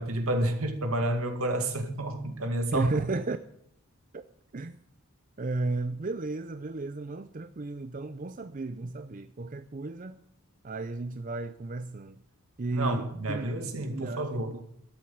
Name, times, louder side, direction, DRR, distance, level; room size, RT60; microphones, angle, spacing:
voice 1, 0.0-2.9 12.7-14.6, right 1 dB, 75° right, 2.2 m, -30 dB
voice 2, 2.7-3.4 4.1-4.2 4.5-4.8 5.4-10.2 10.6-12.2 12.6-13.4 13.9-14.6, right 3 dB, 35° right, 0.5 m, -33 dB
13.0 x 7.9 x 8.7 m
head